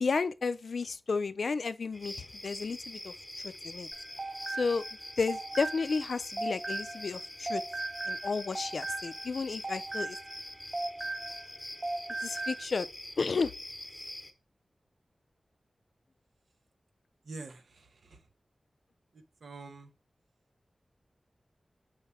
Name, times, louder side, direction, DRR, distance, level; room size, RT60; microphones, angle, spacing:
voice 1, 0.0-3.1 3.4-3.9 4.5-4.8 5.2-7.6 8.1-10.2 12.2-12.9 13.2-13.5, left 4 dB, 75° left, 0.4 m, -32 dB
sound 1, 1.9-14.3, left 1 dB, 15° left, 1.0 m, -44 dB
sound 2, 3.9-7.2 7.5-11.5 11.8-12.6, right 2 dB, 30° right, 0.6 m, -37 dB
voice 2, 17.3-18.2 19.1-19.9, right 3 dB, 90° right, 0.8 m, -46 dB
4.8 x 3.5 x 5.6 m
wide cardioid pair, 95°, 0 cm